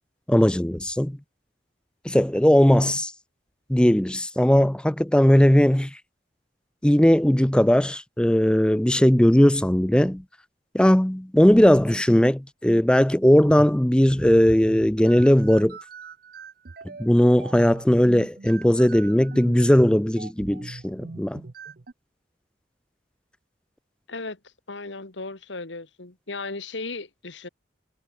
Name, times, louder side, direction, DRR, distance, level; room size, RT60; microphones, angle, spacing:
voice 1, 0.3-1.2 2.0-3.1 3.7-6.0 6.8-10.2 10.7-15.8 17.0-21.4, equal, 5° left, 0.5 m, -18 dB
sound 1, 14.4-21.9, right 4 dB, 55° right, 0.7 m, -42 dB
voice 2, 24.1-24.4 24.7-27.5, left 3 dB, 85° left, 2.1 m, -36 dB
head